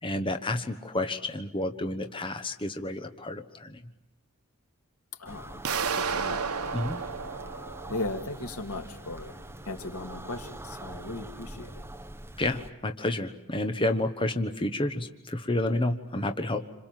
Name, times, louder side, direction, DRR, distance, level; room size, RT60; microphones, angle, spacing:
voice 1, 0.0-3.9 6.7-7.0 12.4-16.6, left 1 dB, 25° left, 7 dB, 1.2 m, -30 dB
voice 2, 5.2-6.5 6.9-7.3 7.9-9.4 9.6-11.8, left 2 dB, 80° left, 5 dB, 2.6 m, -38 dB
sound 1, 5.3-12.7, right 1 dB, 10° right, 1.0 m, -43 dB
sound 2, 5.6-8.5, right 5 dB, 85° right, 1.3 m, -32 dB
28.0 x 27.0 x 7.6 m, 0.82 s
head